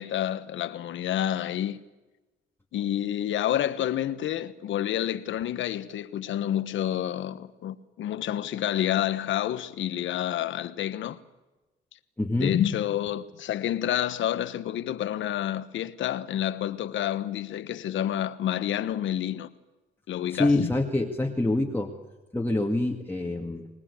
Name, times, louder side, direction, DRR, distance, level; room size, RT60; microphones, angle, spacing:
voice 1, 0.0-1.8 2.7-11.2 12.4-19.5 20.1-20.7, left 11 dB, 75° left, 1.2 m, -29 dB
voice 2, 12.2-12.5 20.3-21.9 22.3-23.7, left 2 dB, 10° left, 2.1 m, -26 dB
25.5 x 20.0 x 8.3 m
cardioid pair, 90°, 20 cm